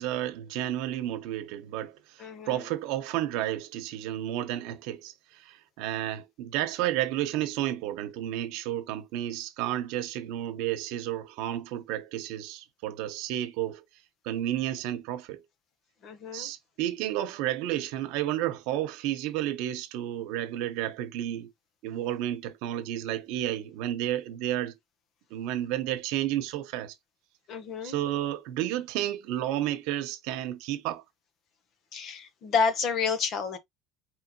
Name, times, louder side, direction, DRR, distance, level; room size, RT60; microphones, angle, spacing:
voice 1, 0.0-2.0 2.5-13.8 14.2-15.4 16.3-21.5 21.8-24.7 25.3-26.9 27.8-31.0, right 13 dB, 70° right, 1.1 m, -31 dB
voice 2, 2.2-2.7 16.0-16.5 27.5-28.0 31.9-33.6, left 5 dB, 40° left, 1.0 m, -30 dB
5.0 x 3.1 x 3.1 m
cardioid pair, 155°, 0 cm